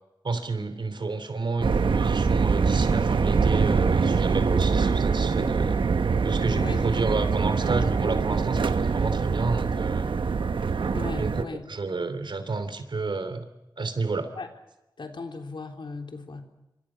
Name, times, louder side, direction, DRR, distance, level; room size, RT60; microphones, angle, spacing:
voice 1, 0.2-5.8 6.2-10.1 11.1-13.5 13.8-14.3, right 3 dB, 70° right, 10 dB, 3.1 m, -30 dB
sound 1, 1.6-11.4, right 5 dB, 90° right, 1.1 m, -24 dB
voice 2, 6.6-6.9 10.9-11.7 14.4-14.5 15.0-16.4, left 3 dB, 75° left, 5 dB, 3.5 m, -37 dB
28.0 x 25.0 x 6.2 m, 0.97 s
wide cardioid pair, 80°, 8 cm